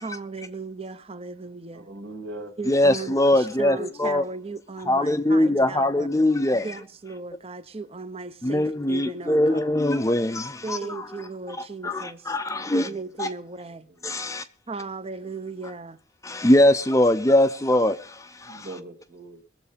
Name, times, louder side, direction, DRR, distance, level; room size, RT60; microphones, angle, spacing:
voice 1, 0.0-1.9 2.6-6.1 6.6-9.6 10.6-12.3 12.7-13.9 14.7-16.0, right 4 dB, 30° right, 0.8 m, -36 dB
voice 2, 1.7-2.6 4.9-5.0 5.3-5.6 12.5-13.0 13.9-14.1 15.3-15.4 18.4-19.4, right 2 dB, 65° right, 2.4 m, -41 dB
voice 3, 2.7-4.2 4.9-6.6 8.4-10.8 11.8-12.9 13.2-13.3 14.0-14.4 16.3-17.9, left 1 dB, 15° left, 0.6 m, -21 dB
21.0 x 7.7 x 5.1 m
head